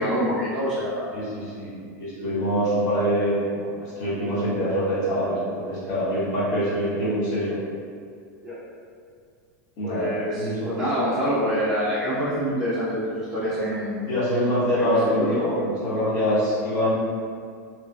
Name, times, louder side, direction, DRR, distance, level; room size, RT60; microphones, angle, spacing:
voice 1, 0.0-1.1 8.4-8.6 9.8-14.0 14.7-15.4, equal, 5° right, -14 dB, 0.6 m, -26 dB
voice 2, 1.1-7.6 9.8-10.7 14.1-16.9, equal, 35° left, -9 dB, 0.9 m, -25 dB
2.6 x 2.1 x 2.2 m, 2.1 s
supercardioid pair, 150°, 9 cm